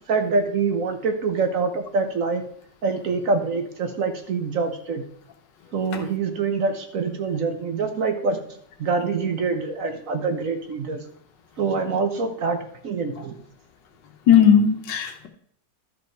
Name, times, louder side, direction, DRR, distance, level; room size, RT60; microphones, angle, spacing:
voice 1, 0.1-2.4 2.8-5.0 5.7-8.4 8.8-11.0 11.6-12.6 12.8-13.4, right 4 dB, 55° right, 1.2 m, -25 dB
voice 2, 14.3-15.3, left 8 dB, 80° left, 1.6 m, -17 dB
12.0 x 5.2 x 4.6 m
omnidirectional pair, 1.9 m